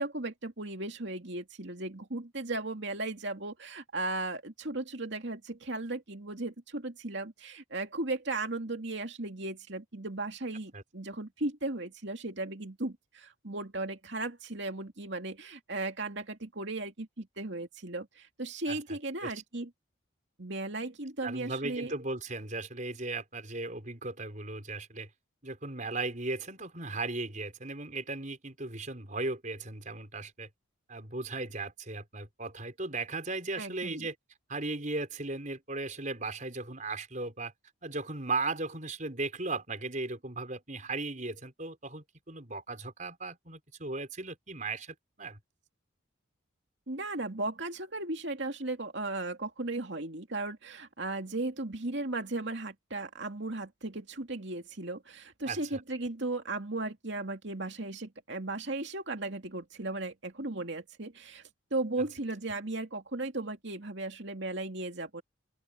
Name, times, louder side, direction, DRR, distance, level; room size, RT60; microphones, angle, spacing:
voice 1, 0.0-19.7 20.4-21.9 33.6-34.1 46.9-61.4 61.7-65.2, right 2 dB, 55° right, 2.7 m, -36 dB
voice 2, 21.2-25.1 25.4-30.5 30.9-34.1 34.5-37.5 37.8-45.4 55.5-55.8, right 3 dB, 40° right, 5.1 m, -37 dB
open air
head